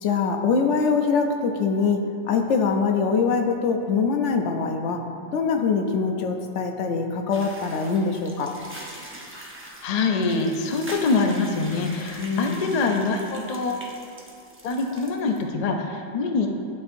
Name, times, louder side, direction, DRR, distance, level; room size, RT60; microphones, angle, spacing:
voice 1, 0.0-5.0 5.3-8.5 12.2-12.8, left 5 dB, 65° left, 4 dB, 0.8 m, -23 dB
sound 1, 7.3-15.4, right 1 dB, 15° right, 0.4 m, -42 dB
voice 2, 9.8-13.9 14.6-16.5, left 3 dB, 85° left, 3 dB, 0.3 m, -24 dB
11.5 x 4.5 x 2.6 m, 2.6 s
omnidirectional pair, 1.4 m